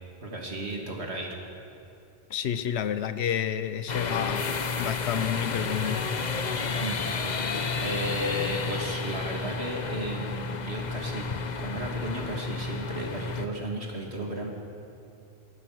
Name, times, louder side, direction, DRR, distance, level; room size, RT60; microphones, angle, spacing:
voice 1, 0.2-1.4 6.6-7.0 7.8-11.3 11.6-14.5, right 1 dB, 85° right, 0 dB, 3.2 m, -34 dB
voice 2, 2.3-4.5 4.8-6.0, left 9 dB, 85° left, 12 dB, 1.0 m, -30 dB
sound 1, 3.9-13.5, left 4 dB, 45° left, 1.0 m, -31 dB
24.0 x 18.5 x 6.2 m, 2.6 s
omnidirectional pair, 1.1 m